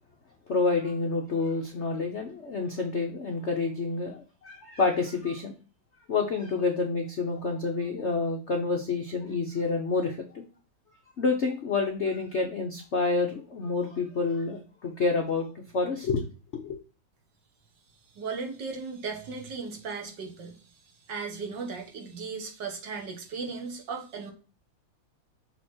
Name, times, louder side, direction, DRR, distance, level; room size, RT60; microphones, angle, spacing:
voice 1, 0.5-5.5 6.1-10.5 11.2-16.2 16.6-16.8, left 4 dB, 60° left, 3 dB, 0.7 m, -28 dB
voice 2, 18.2-20.6 21.1-24.3, right 4 dB, 60° right, 3 dB, 1.8 m, -36 dB
7.0 x 3.5 x 4.3 m, 0.36 s
omnidirectional pair, 2.3 m